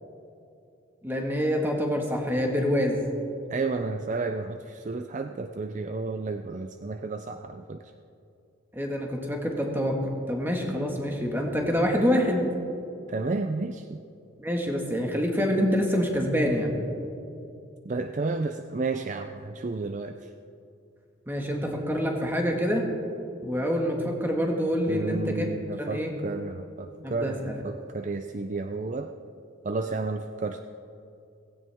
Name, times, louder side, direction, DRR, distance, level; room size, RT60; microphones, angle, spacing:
voice 1, 1.0-3.0 8.7-12.4 14.4-16.7 21.3-22.8 23.4-25.5 25.8-26.1 27.0-27.6, equal, 10° right, 1 dB, 1.6 m, -26 dB
voice 2, 3.5-7.9 13.1-14.0 17.8-20.3 24.9-27.4 27.6-29.1 29.6-30.6, right 3 dB, 35° right, 7 dB, 0.4 m, -32 dB
17.0 x 16.0 x 3.5 m, 2.6 s
head